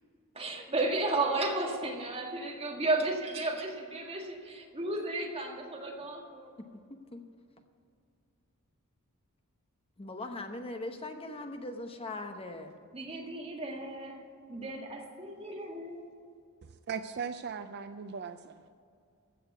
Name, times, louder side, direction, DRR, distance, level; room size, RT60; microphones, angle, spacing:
voice 1, 0.3-6.5 12.9-16.1, right 2 dB, 25° right, 0 dB, 1.9 m, -34 dB
voice 2, 10.0-12.7, left 2 dB, 25° left, 6 dB, 0.9 m, -40 dB
voice 3, 16.6-18.6, right 6 dB, 50° right, 9 dB, 0.5 m, -39 dB
15.5 x 6.6 x 8.0 m, 2.3 s
head